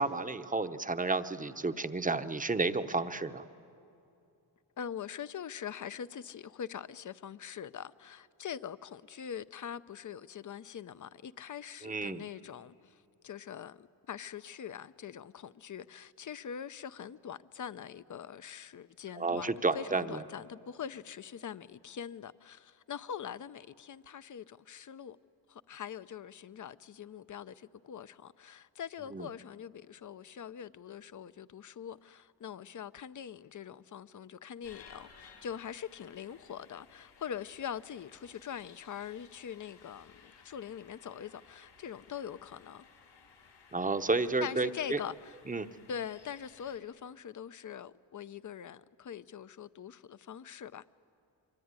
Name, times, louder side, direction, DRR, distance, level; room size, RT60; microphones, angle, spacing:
voice 1, 0.0-3.4 11.8-12.2 19.2-20.2 29.1-29.3 43.7-45.0 45.5-45.7, right 3 dB, 20° right, 0.9 m, -31 dB
voice 2, 4.8-19.5 19.7-25.2 25.5-42.8 44.4-45.4 45.9-50.8, left 8 dB, 45° left, 0.7 m, -43 dB
sound 1, 34.6-46.8, left 5 dB, 80° left, 5.1 m, -59 dB
24.5 x 24.0 x 9.7 m
cardioid pair, 100°, 44 cm